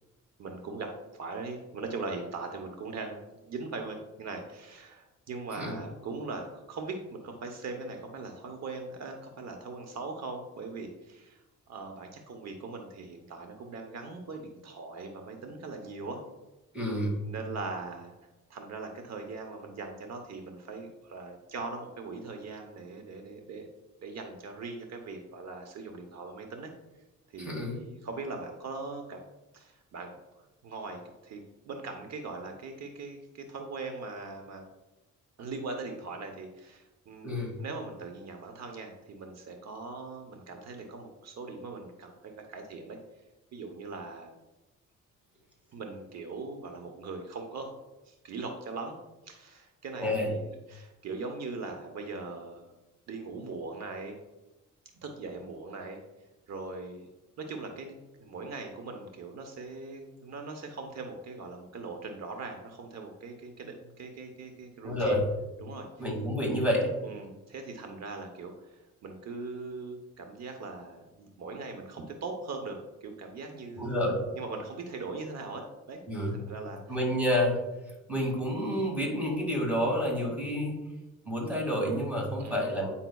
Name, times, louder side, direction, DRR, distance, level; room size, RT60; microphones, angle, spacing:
voice 1, 0.4-11.4 11.7-16.2 17.2-18.1 18.5-23.7 24.0-26.7 27.3-29.2 29.5-30.1 30.6-34.6 35.4-43.0 43.5-44.3 45.7-47.7 48.1-49.0 49.2-52.7 53.1-54.2 55.0-56.0 56.5-57.1 57.4-65.2 65.6-65.9 67.0-76.0 76.3-77.0 82.4-82.8, right 3 dB, 60° right, 4 dB, 0.9 m, -40 dB
voice 2, 16.7-17.2 27.4-27.8 37.2-37.6 50.0-50.3 64.8-65.3 66.0-66.9 73.8-74.2 76.1-76.4 76.9-77.7 78.1-80.8 81.3-82.9, equal, 5° right, -1 dB, 2.2 m, -29 dB
9.0 x 5.6 x 2.3 m, 1.0 s
cardioid pair, 90°, 30 cm